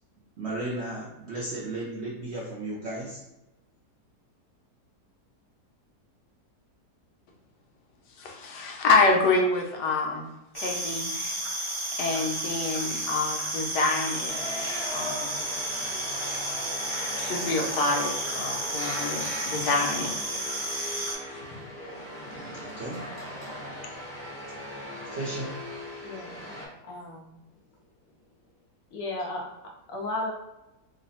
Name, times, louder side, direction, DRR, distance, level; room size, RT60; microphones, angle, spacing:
voice 1, 0.4-3.2 22.6-23.1 25.1-25.6, right 2 dB, 65° right, -5 dB, 0.7 m, -34 dB
voice 2, 8.2-10.3 10.5-11.1 12.0-14.3 14.9-15.4 17.1-20.1 21.5-21.6, left 3 dB, 90° left, 1 dB, 1.3 m, -26 dB
sound 1, 10.5-21.1, right 1 dB, 45° right, 1.4 m, -32 dB
sound 2, 14.3-26.7, equal, 30° left, 0.9 m, -38 dB
voice 3, 26.0-26.5 26.8-27.4 28.9-29.5 29.9-30.3, left 2 dB, 65° left, -2 dB, 1.1 m, -34 dB
3.1 x 2.0 x 4.0 m, 0.94 s
omnidirectional pair, 1.8 m